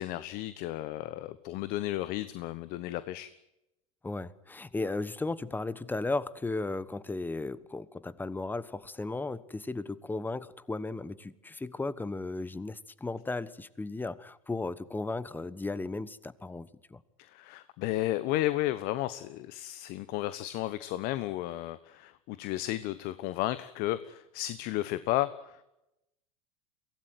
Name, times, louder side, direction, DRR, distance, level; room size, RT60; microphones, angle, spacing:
voice 1, 0.0-3.3 17.2-25.6, left 15 dB, 55° left, 14 dB, 1.3 m, -33 dB
voice 2, 4.0-17.0, left 3 dB, 10° left, 18 dB, 1.3 m, -35 dB
23.5 x 17.5 x 9.3 m, 0.89 s
hypercardioid pair, 100°, 18 cm